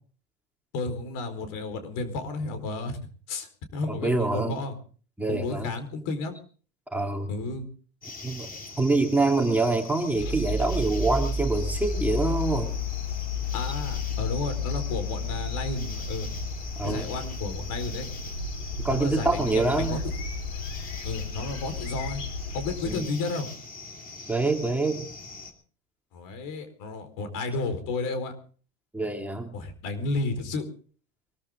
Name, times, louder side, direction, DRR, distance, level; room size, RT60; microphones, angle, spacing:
voice 1, 0.7-3.0 3.3-4.8 5.3-6.4 7.3-7.6 13.5-16.3 16.8-18.1 18.9-20.0 21.0-22.2 22.5-23.5 26.1-28.3 29.5-30.7, left 3 dB, 60° left, 9 dB, 4.5 m, -32 dB
voice 2, 3.9-4.6 5.2-5.7 6.9-7.3 8.2-8.5 8.8-12.8 16.8-17.1 18.8-20.0 22.8-23.1 24.3-25.1 28.9-29.6, right 2 dB, 5° right, 3 dB, 2.4 m, -26 dB
sound 1, 8.0-25.5, left 3 dB, 25° left, 3.2 m, -42 dB
sound 2, 10.1-23.0, left 3 dB, 85° left, 4.2 m, -32 dB
23.5 x 14.0 x 3.7 m, 0.41 s
supercardioid pair, 110°, 35 cm